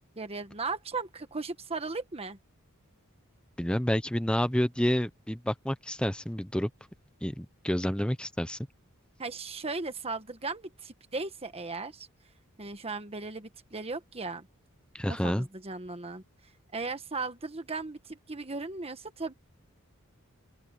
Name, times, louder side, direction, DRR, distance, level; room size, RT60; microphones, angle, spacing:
voice 1, 0.2-2.4 9.2-12.1 12.6-14.5 15.1-19.3, right 3 dB, 25° right, 1.3 m, -37 dB
voice 2, 3.6-6.7 7.2-8.6 14.9-15.5, equal, 5° left, 0.9 m, -29 dB
open air
head